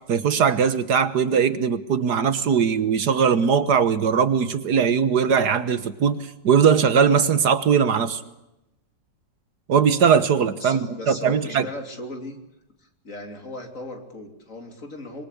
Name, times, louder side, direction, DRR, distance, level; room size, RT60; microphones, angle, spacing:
voice 1, 0.1-8.2 9.7-11.6, right 7 dB, 65° right, 13 dB, 1.7 m, -20 dB
voice 2, 10.5-12.4 12.8-15.2, left 2 dB, 45° left, 5 dB, 3.5 m, -37 dB
26.0 x 23.0 x 8.4 m, 0.91 s
omnidirectional pair, 1.9 m